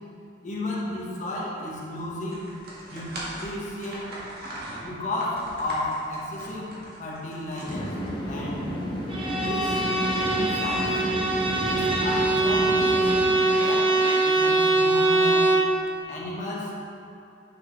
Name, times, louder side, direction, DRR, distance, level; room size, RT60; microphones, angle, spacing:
voice 1, 0.4-2.4 2.9-4.1 4.8-8.0 8.3-8.6 9.4-9.8 10.3-11.0 11.6-15.5 16.1-16.7, left 1 dB, 45° left, -5 dB, 1.7 m, -33 dB
sound 1, 2.3-8.4, right 1 dB, 55° right, 1.9 m, -40 dB
sound 2, 7.7-13.2, equal, 25° left, 1.3 m, -31 dB
Bowed string instrument, 9.1-15.8, right 2 dB, 30° right, 0.8 m, -22 dB
9.5 x 6.4 x 3.4 m, 2.6 s
head